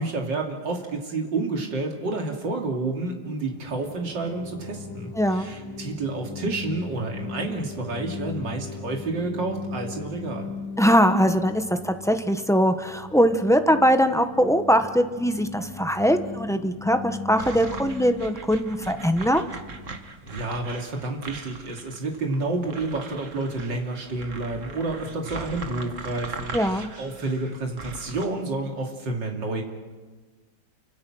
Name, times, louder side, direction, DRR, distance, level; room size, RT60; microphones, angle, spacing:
voice 1, 0.0-10.5 20.3-29.6, right 2 dB, 70° right, 1 dB, 3.4 m, -30 dB
sound 1, 3.3-20.9, left 5 dB, 70° left, 2.3 m, -39 dB
voice 2, 5.2-5.5 10.8-19.4 26.5-26.9, equal, 5° left, 7 dB, 0.5 m, -21 dB
sound 2, 17.4-28.3, right 4 dB, 40° right, 2.0 m, -39 dB
29.5 x 25.0 x 6.2 m, 1.3 s
omnidirectional pair, 2.0 m